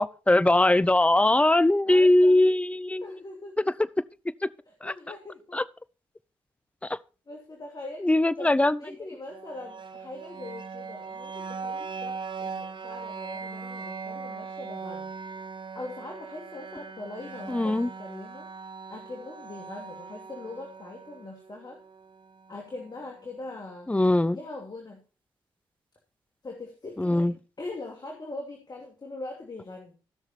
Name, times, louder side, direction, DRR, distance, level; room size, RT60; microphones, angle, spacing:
voice 1, 0.0-3.0 4.8-4.9 5.5-5.6 8.0-8.8 17.5-17.9 23.9-24.4 27.0-27.3, left 1 dB, 10° left, 0.6 m, -21 dB
voice 2, 1.8-2.4 3.0-3.7 4.7-5.6 7.3-8.1 8.4-15.1 15.7-18.5 18.9-21.8 22.5-23.9 24.3-25.0 26.4-29.9, left 2 dB, 40° left, 2.6 m, -41 dB
sound 1, 9.3-23.2, right 5 dB, 55° right, 1.2 m, -40 dB
14.5 x 6.5 x 4.3 m
hypercardioid pair, 40°, 10 cm